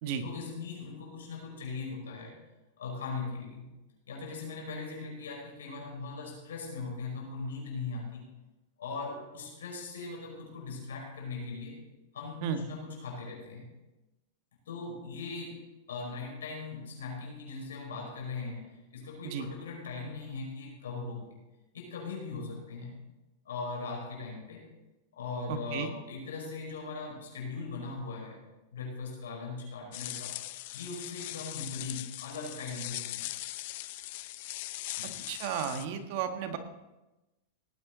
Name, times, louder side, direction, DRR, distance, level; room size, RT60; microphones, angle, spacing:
voice 1, 0.2-2.4 2.8-3.7 4.1-8.3 8.8-11.8 12.1-13.7 14.7-21.4 21.7-23.0 23.4-24.7 25.1-28.4 28.7-30.4 30.7-33.3 35.0-35.2, left 4 dB, 90° left, -1 dB, 5.4 m, -40 dB
voice 2, 25.5-25.9 35.3-36.6, right 8 dB, 55° right, 6 dB, 1.6 m, -33 dB
sound 1, 29.9-35.9, left 17 dB, 60° left, 0.6 m, -40 dB
18.0 x 9.2 x 4.0 m, 1.0 s
hypercardioid pair, 130°, 0 cm